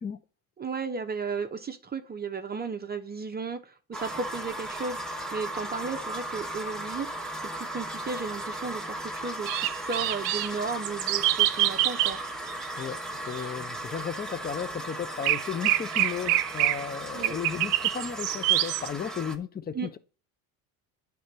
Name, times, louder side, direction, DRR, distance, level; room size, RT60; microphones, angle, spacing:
voice 1, 0.6-12.2 17.1-17.4 19.7-19.9, right 5 dB, 25° right, 0.7 m, -35 dB
sound 1, 3.9-19.4, right 1 dB, ahead, 1.0 m, -37 dB
sound 2, 9.5-10.5 10.8-12.2 12.5-12.8 13.3-13.4 15.2-16.8 17.2-18.9, right 16 dB, 80° right, 0.6 m, -26 dB
voice 2, 13.3-20.0, left 7 dB, 20° left, 0.6 m, -34 dB
9.4 x 3.4 x 6.6 m
supercardioid pair, 95°, 42 cm